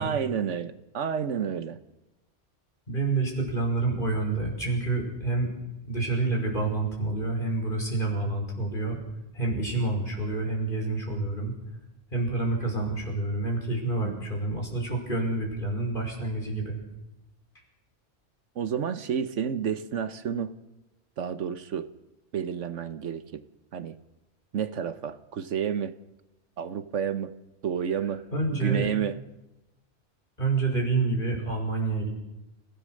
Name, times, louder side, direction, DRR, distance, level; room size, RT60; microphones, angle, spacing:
voice 1, 0.0-1.8 14.0-14.3 18.5-20.5 21.2-21.9 22.3-23.5 23.7-24.0 24.5-26.0 26.6-27.3 27.6-28.3 28.5-29.2, right 8 dB, 80° right, 1.3 m, -30 dB
voice 2, 2.9-5.5 5.8-9.0 9.3-11.5 12.1-16.8 28.3-28.9 30.4-32.1, right 3 dB, 45° left, 5.7 m, -28 dB
28.5 x 16.5 x 6.5 m
omnidirectional pair, 1.2 m